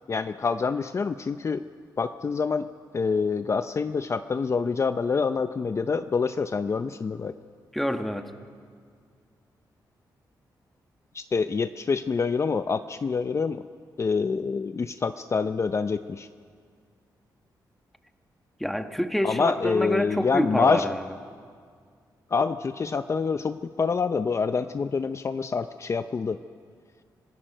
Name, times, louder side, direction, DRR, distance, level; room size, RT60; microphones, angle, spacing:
voice 1, 0.1-1.6 2.0-2.7 2.9-7.3 11.1-13.6 14.0-16.3 19.2-20.8 22.3-26.4, left 5 dB, 40° left, 10 dB, 0.6 m, -26 dB
voice 2, 7.7-8.3 18.6-21.0, equal, ahead, 7 dB, 1.4 m, -27 dB
26.0 x 17.5 x 6.6 m, 2.1 s
cardioid pair, 95°, 8 cm